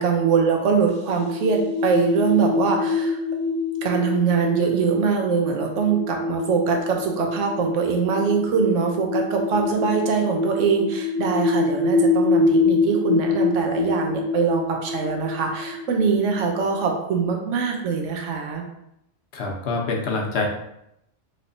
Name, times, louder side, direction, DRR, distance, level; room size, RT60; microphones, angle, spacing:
voice 1, 0.0-3.2 3.8-18.6, right 5 dB, 85° right, 2 dB, 1.0 m, -23 dB
sound 1, 0.9-17.2, left 3 dB, 40° right, 0.4 m, -25 dB
voice 2, 19.3-20.5, left 3 dB, 65° left, 0 dB, 0.8 m, -25 dB
3.1 x 2.8 x 2.6 m, 0.80 s
omnidirectional pair, 1.2 m